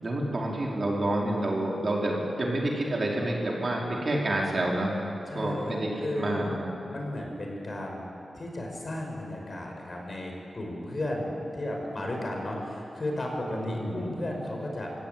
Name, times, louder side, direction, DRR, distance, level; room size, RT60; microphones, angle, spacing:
voice 1, 0.0-5.0 5.3-6.7 13.5-14.1, right 1 dB, 40° right, -2 dB, 4.5 m, -29 dB
voice 2, 5.3-6.5 6.9-15.0, left 1 dB, 40° left, 0 dB, 5.7 m, -34 dB
24.0 x 16.5 x 9.3 m, 2.7 s
wide cardioid pair, 95°, 0 cm